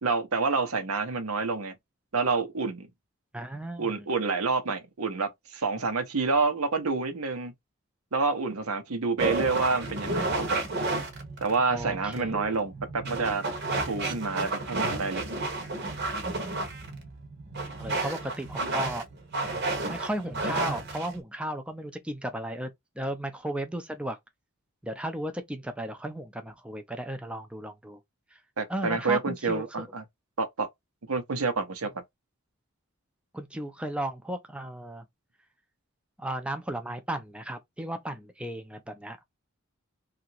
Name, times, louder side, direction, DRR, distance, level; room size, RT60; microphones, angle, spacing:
voice 1, 0.0-1.7 2.1-2.9 3.8-7.5 8.1-10.6 11.4-13.4 13.9-15.3 28.6-30.0 30.4-30.7 31.1-31.9, right 4 dB, 90° right, 0.9 m, -28 dB
voice 2, 3.3-4.1 10.1-10.4 11.7-12.6 17.8-19.0 19.7-22.7 23.0-24.2 24.8-28.0 28.3-28.4 28.7-29.7 33.3-35.0 36.2-39.2, right 1 dB, 5° right, 0.4 m, -35 dB
sound 1, 9.2-21.2, right 2 dB, 50° right, 0.9 m, -32 dB
2.8 x 2.5 x 2.8 m
head